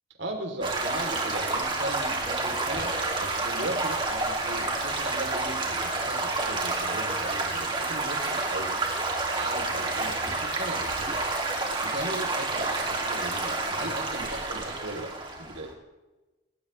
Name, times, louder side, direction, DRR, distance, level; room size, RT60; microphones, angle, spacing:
voice 1, 0.2-8.8 9.3-11.3 11.8-15.1 15.4-15.7, right 1 dB, 80° right, 3 dB, 3.4 m, -37 dB
Stream / Gurgling / Trickle dribble, 0.6-15.7, right 3 dB, 25° right, 2.6 m, -29 dB
19.5 x 18.5 x 3.3 m, 1.1 s
head